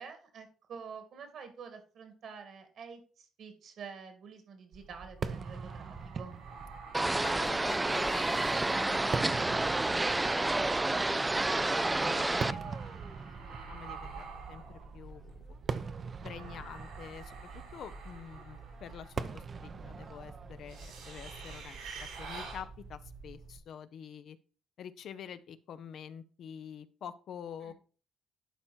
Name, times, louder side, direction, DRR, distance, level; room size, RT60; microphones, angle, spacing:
voice 1, 0.0-6.4 27.6-27.7, right 6 dB, 65° right, 7 dB, 2.4 m, -48 dB
sound 1, 4.7-23.6, right 4 dB, 90° right, 4.2 m, -47 dB
Fireworks, 5.2-22.5, right 5 dB, 45° right, 0.7 m, -43 dB
sound 2, 6.9-12.5, right 2 dB, 15° right, 0.3 m, -29 dB
voice 2, 7.2-12.9 13.7-14.6 14.9-15.5 16.2-21.8 22.2-24.4 24.8-27.8, left 8 dB, 65° left, 12 dB, 0.7 m, -47 dB
11.5 x 4.5 x 4.4 m, 0.38 s
cardioid pair, 80°, 0 cm